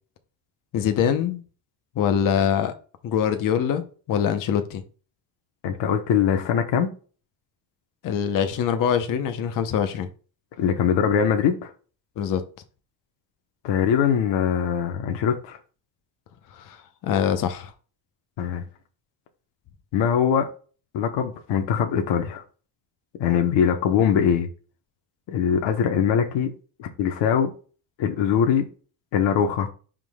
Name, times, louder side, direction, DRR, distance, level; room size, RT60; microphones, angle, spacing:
voice 1, 0.7-1.4 2.0-2.7 3.0-4.8 8.0-10.1 12.2-12.4 16.5-16.8 17.0-17.7, left 8 dB, 45° left, 8 dB, 0.7 m, -23 dB
voice 2, 5.6-6.9 10.6-11.7 13.6-15.6 18.4-18.6 19.9-20.5 20.9-22.4 23.2-24.5 25.3-26.5 26.8-27.5 28.0-28.6 29.1-29.7, left 8 dB, 65° left, 5 dB, 1.0 m, -22 dB
11.0 x 3.8 x 2.2 m, 0.37 s
cardioid pair, 165°, 46 cm